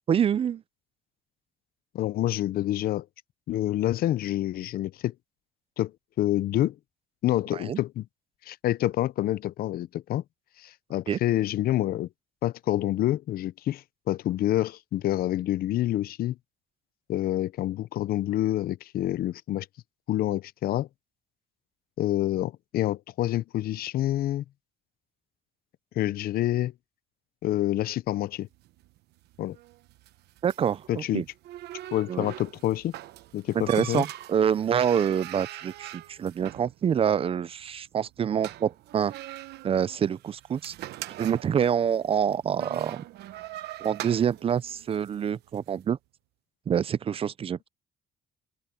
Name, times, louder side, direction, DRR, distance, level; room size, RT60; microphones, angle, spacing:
voice 1, 0.1-0.6 7.5-7.8 11.1-11.2 30.4-31.2 32.1-32.3 33.5-39.1 39.6-40.7 41.2-43.0 43.8-46.0 46.7-47.7, right 8 dB, 35° right, 0.5 m, -26 dB
voice 2, 1.9-3.1 3.5-5.1 5.8-5.9 6.2-6.8 7.2-8.0 8.5-10.2 10.6-12.1 12.4-16.4 17.1-19.7 20.1-20.9 22.0-24.4 26.0-26.7 27.4-28.5 29.4-29.6 30.9-31.2 31.9-32.9 33.3-34.0, left 14 dB, 60° left, 0.7 m, -27 dB
sound 1, 28.5-45.7, right 15 dB, 75° right, 1.1 m, -43 dB
open air
cardioid pair, 110°, 17 cm